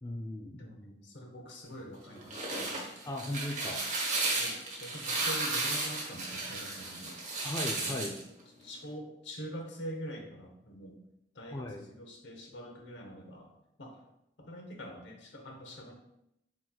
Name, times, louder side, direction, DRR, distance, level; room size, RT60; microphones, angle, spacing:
voice 1, 0.0-0.7 3.1-3.8 7.4-8.1 11.5-11.8, left 1 dB, 20° left, 1 dB, 0.4 m, -37 dB
voice 2, 0.5-2.8 4.4-7.2 7.8-8.2 8.6-11.0 11.3-14.0 14.4-15.9, equal, 85° left, 2 dB, 0.9 m, -45 dB
sound 1, 2.1-8.2, right 2 dB, 40° right, 1.0 m, -34 dB
7.5 x 3.0 x 2.3 m, 0.81 s
head